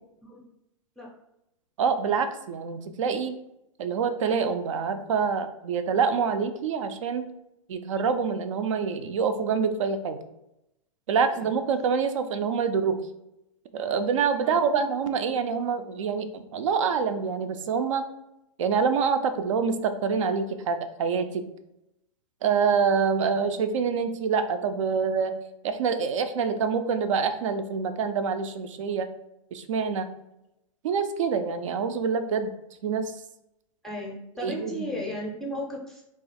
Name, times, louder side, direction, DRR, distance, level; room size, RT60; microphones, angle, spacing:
voice 1, 1.8-3.4 3.8-7.3 7.7-10.2 11.1-13.0 13.7-18.0 18.6-21.4 22.4-25.3 25.6-29.1 29.5-30.1 30.8-32.5 32.8-33.1 34.4-34.7, right 6 dB, 65° right, 9 dB, 0.4 m, -26 dB
voice 2, 14.4-14.8 33.8-36.0, equal, 5° left, -3 dB, 0.5 m, -35 dB
2.4 x 2.4 x 4.0 m, 0.87 s
hypercardioid pair, 115°, 17 cm